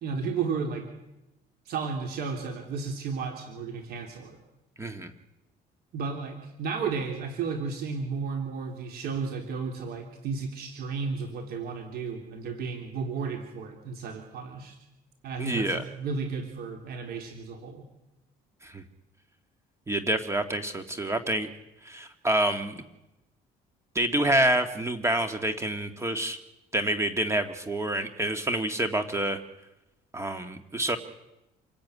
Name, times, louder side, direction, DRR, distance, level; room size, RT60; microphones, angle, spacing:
voice 1, 0.0-0.9 1.7-4.4 5.9-14.8 15.2-17.9, right 5 dB, 70° right, 4 dB, 3.4 m, -33 dB
voice 2, 4.8-5.1 15.4-15.8 18.6-18.8 19.9-21.5 21.8-22.7 24.0-26.4 26.7-29.4 30.1-31.0, right 1 dB, 15° right, 7 dB, 1.9 m, -27 dB
27.5 x 17.0 x 9.6 m, 0.95 s
cardioid pair, 110°, 17 cm